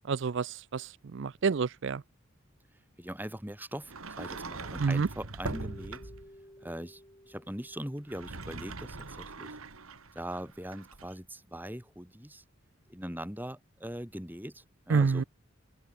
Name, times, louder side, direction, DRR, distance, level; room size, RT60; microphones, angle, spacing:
voice 1, 0.1-2.0 4.8-5.1 14.9-15.2, right 5 dB, 55° right, 0.4 m, -28 dB
voice 2, 2.7-6.1 6.6-9.6 10.1-12.4 12.9-15.3, equal, 10° right, 6.2 m, -41 dB
Sliding door, 3.8-6.3 8.0-11.2, right 3 dB, 80° right, 2.1 m, -42 dB
Keyboard (musical), 5.5-8.8, equal, 25° left, 7.4 m, -54 dB
open air
head